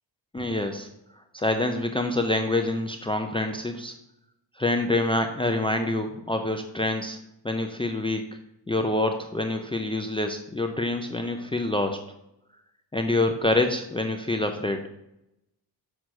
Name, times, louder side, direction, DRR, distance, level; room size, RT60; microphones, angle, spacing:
voice 1, 0.3-0.9 1.3-3.9 4.6-7.2 7.4-8.4 8.7-12.0 12.9-14.8, left 2 dB, 10° left, 6 dB, 0.5 m, -26 dB
6.4 x 5.9 x 6.3 m, 0.83 s
wide cardioid pair, 140°, 46 cm